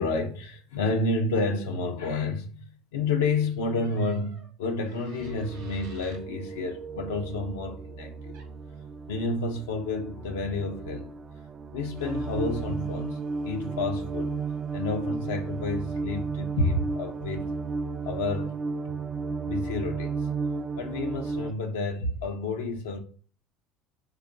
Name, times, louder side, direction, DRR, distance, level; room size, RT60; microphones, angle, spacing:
voice 1, 0.0-8.3 9.1-11.1 11.7-14.3 14.7-17.5 18.0-18.6 19.2-20.3 20.8-23.0, left 3 dB, 90° left, 0.5 m, -30 dB
sound 1, 3.7-6.3 8.3-8.5, right 4 dB, 85° right, 0.8 m, -53 dB
sound 2, 5.2-21.5, right 4 dB, 35° right, 0.4 m, -34 dB
3.4 x 2.3 x 3.8 m
supercardioid pair, 80°, 0 cm